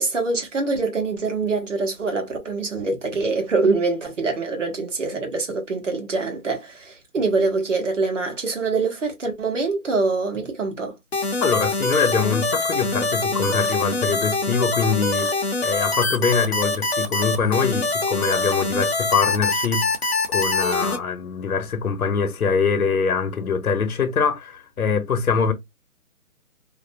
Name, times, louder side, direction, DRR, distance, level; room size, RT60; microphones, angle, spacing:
voice 1, 0.0-10.9, right 3 dB, 60° right, 1.0 m, -24 dB
sound 1, 11.1-21.0, left 2 dB, 45° left, 0.6 m, -24 dB
voice 2, 11.4-15.3 15.6-19.9 20.3-25.5, left 5 dB, 75° left, 0.8 m, -23 dB
2.5 x 2.1 x 2.5 m
hypercardioid pair, 180°, 44 cm